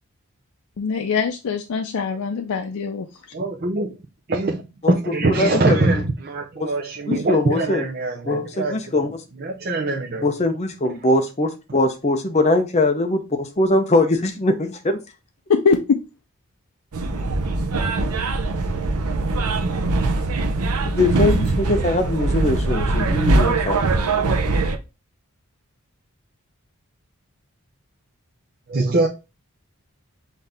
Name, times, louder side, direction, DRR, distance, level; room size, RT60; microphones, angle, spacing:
voice 1, 0.8-3.1 15.5-16.0, left 5 dB, 80° left, 0.4 m, -22 dB
voice 2, 3.3-4.0 4.3-9.1 9.4-10.2 28.7-29.1, right 2 dB, 45° right, 0.6 m, -23 dB
voice 3, 5.2-6.0 6.6-6.7 7.1-7.8 8.2-9.2 10.2-15.0 20.8-24.0, left 2 dB, 30° left, 0.6 m, -21 dB
sound 1, 16.9-24.8, right 3 dB, 85° right, 0.7 m, -21 dB
5.7 x 2.7 x 3.4 m
head